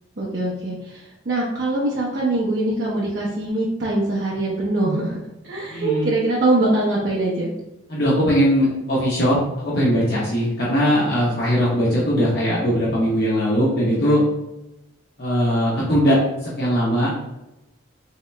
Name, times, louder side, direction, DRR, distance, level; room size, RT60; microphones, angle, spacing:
voice 1, 0.2-5.2 5.4-7.5, right 2 dB, 55° right, -5 dB, 0.6 m, -23 dB
voice 2, 5.7-6.1 7.9-9.4 9.6-14.2 15.2-17.1, equal, 55° left, -7 dB, 0.8 m, -20 dB
3.3 x 2.8 x 3.2 m, 0.92 s
head